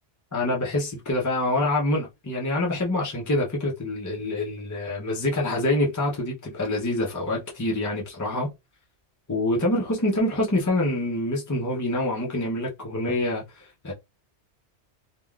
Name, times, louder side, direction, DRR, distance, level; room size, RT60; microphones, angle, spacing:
voice 1, 0.3-8.5 9.3-13.9, left 1 dB, 25° left, 0.4 m, -26 dB
3.4 x 2.1 x 2.2 m
omnidirectional pair, 1.2 m